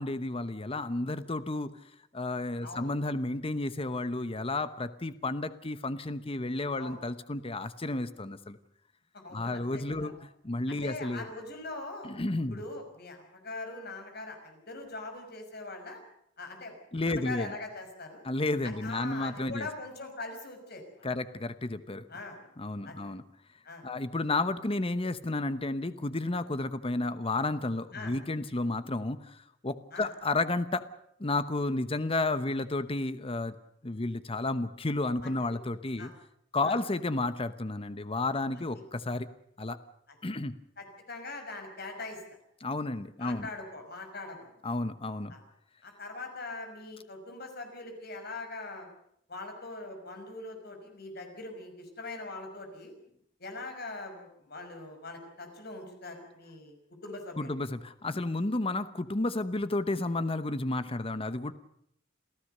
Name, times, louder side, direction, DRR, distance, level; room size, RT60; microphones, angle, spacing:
voice 1, 0.0-1.7 2.1-8.6 9.3-11.3 12.0-12.6 16.9-17.5 18.2-19.7 21.0-22.1 22.6-23.2 23.8-29.4 29.6-30.8 31.2-33.5 33.8-36.1 36.5-39.3 39.6-39.8 40.2-40.5 42.6-43.5 44.6-45.3 57.4-61.5, left 2 dB, 30° left, 12 dB, 0.9 m, -32 dB
voice 2, 9.1-10.1 10.7-12.1 12.5-16.0 16.4-18.2 18.6-21.1 22.1-22.4 22.8-23.0 23.6-23.9 27.9-28.1 29.9-30.1 35.2-35.4 36.0-36.1 36.6-36.8 40.8-42.2 43.2-44.5 45.3-45.4 45.8-48.9 49.3-52.9 53.4-56.8 57.0-57.5, left 2 dB, 55° left, 4 dB, 5.8 m, -42 dB
28.0 x 15.5 x 6.7 m, 0.72 s
head